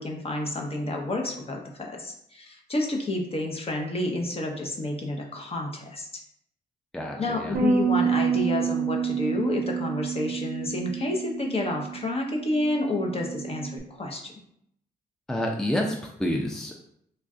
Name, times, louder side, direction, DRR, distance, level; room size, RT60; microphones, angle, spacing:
voice 1, 0.0-6.1 7.2-14.3, left 2 dB, 35° left, 1 dB, 0.8 m, -30 dB
voice 2, 6.9-7.6 15.3-16.8, equal, 5° left, 0 dB, 0.5 m, -29 dB
Bass guitar, 7.5-13.8, right 6 dB, 65° right, 0.6 m, -28 dB
3.2 x 2.4 x 3.6 m, 0.72 s
cardioid pair, 75°, 17 cm